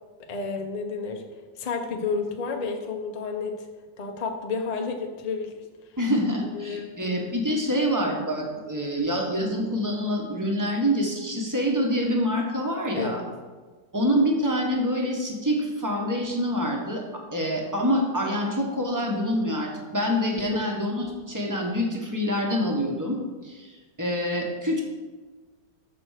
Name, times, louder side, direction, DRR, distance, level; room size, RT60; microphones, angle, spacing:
voice 1, 0.3-1.2 1.6-3.7 4.0-5.6 6.5-6.9 13.0-13.3 20.5-20.6, left 4 dB, 60° left, 3 dB, 0.4 m, -30 dB
voice 2, 6.0-13.2 13.9-17.0 17.3-23.7 24.0-24.8, equal, 15° right, 0 dB, 0.9 m, -26 dB
6.8 x 4.4 x 6.4 m, 1.4 s
omnidirectional pair, 2.0 m